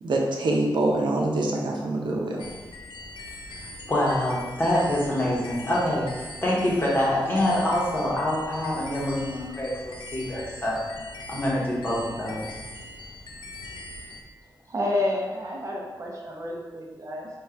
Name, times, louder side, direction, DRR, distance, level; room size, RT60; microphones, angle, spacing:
voice 1, 0.0-2.4, right 2 dB, 80° right, -1 dB, 0.7 m, -25 dB
sound 1, 2.4-14.2, left 2 dB, 85° left, 0.4 m, -41 dB
voice 2, 3.9-10.8 11.3-12.5, left 1 dB, 25° left, -5 dB, 1.0 m, -25 dB
voice 3, 14.7-17.3, left 1 dB, 40° right, -2 dB, 0.6 m, -29 dB
3.7 x 2.3 x 4.4 m, 1.2 s
wide cardioid pair, 165°, 8 cm